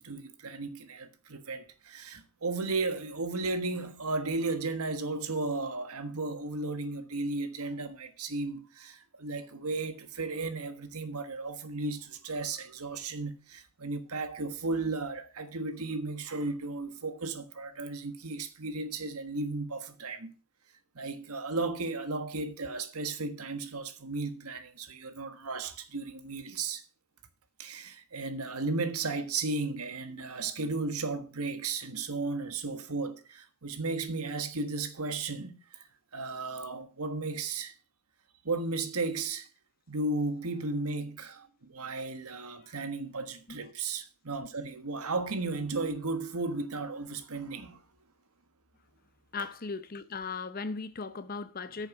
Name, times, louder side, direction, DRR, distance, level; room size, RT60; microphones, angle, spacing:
voice 1, 0.0-20.3 20.9-26.8 27.6-35.8 36.1-37.7 38.4-39.5 39.9-47.8, right 3 dB, 90° right, 1.5 m, -34 dB
voice 2, 49.3-51.9, left 4 dB, 40° left, 0.7 m, -37 dB
9.3 x 6.8 x 6.0 m
head